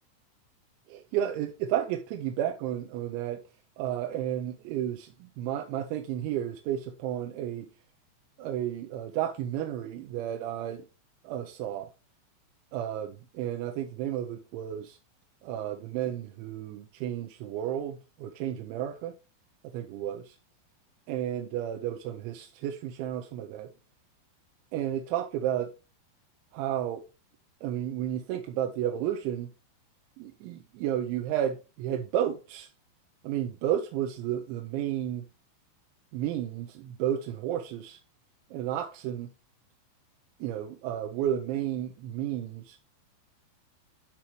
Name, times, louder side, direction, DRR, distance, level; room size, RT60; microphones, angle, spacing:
voice 1, 0.9-3.4 3.8-7.7 8.4-10.9 11.2-11.9 12.7-15.0 15.4-19.1 19.7-20.4 21.1-23.7 24.7-25.7 26.5-27.0 27.6-29.5 30.2-32.7 33.2-35.3 36.1-38.0 38.5-39.3 40.4-42.8, right 11 dB, 80° right, 2.9 m, -32 dB
12.5 x 4.5 x 3.1 m
omnidirectional pair, 5.6 m